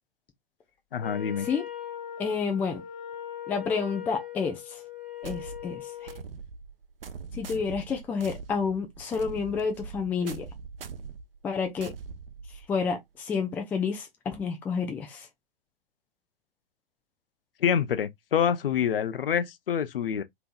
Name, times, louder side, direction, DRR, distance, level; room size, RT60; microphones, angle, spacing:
voice 1, 0.9-1.5 17.6-20.2, left 8 dB, 70° left, 0.6 m, -26 dB
Wind instrument woodwind instrument, 1.0-6.2, left 10 dB, 30° left, 1.5 m, -40 dB
voice 2, 2.2-2.8 3.5-4.8 5.2-5.8 7.3-10.5 11.4-11.9 12.7-15.3, left 5 dB, 5° left, 0.3 m, -29 dB
sound 1, 5.2-12.9, right 5 dB, 70° right, 0.6 m, -42 dB
3.3 x 2.9 x 2.3 m
figure-of-eight pair, 105°, 29 cm